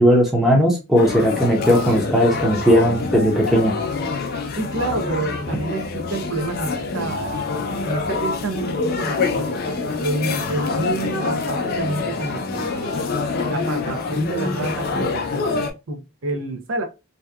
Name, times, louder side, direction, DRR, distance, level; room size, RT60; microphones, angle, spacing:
voice 1, 0.0-3.7, equal, ahead, 0.6 m, -17 dB
sound 1, 1.0-15.7, left 4 dB, 45° left, 0.4 m, -26 dB
voice 2, 4.6-7.4 7.8-9.6 10.0-13.1 13.5-16.8, right 2 dB, 65° right, 0.5 m, -28 dB
2.7 x 2.2 x 2.2 m
head